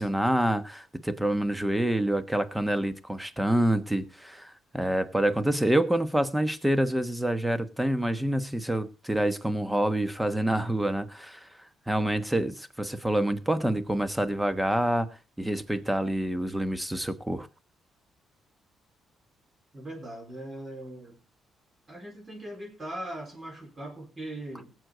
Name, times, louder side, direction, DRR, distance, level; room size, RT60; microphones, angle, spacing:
voice 1, 0.0-11.5 11.9-15.1 15.4-17.5, right 1 dB, 5° right, 1.2 m, -27 dB
voice 2, 19.7-21.2 21.9-24.8, right 1 dB, 30° right, 4.5 m, -40 dB
17.5 x 8.1 x 3.9 m
cardioid pair, 90°, 0 cm